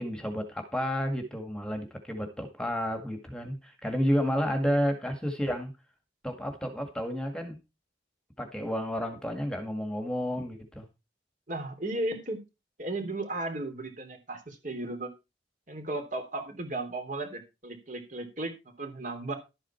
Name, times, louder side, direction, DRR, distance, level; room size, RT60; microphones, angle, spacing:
voice 1, 0.0-5.7 6.2-7.6 8.4-10.9, equal, 5° left, 4 dB, 1.8 m, -31 dB
voice 2, 11.5-12.4 12.8-15.1 15.7-19.4, right 2 dB, 45° right, 6 dB, 3.1 m, -35 dB
12.0 x 9.0 x 4.4 m, 0.26 s
head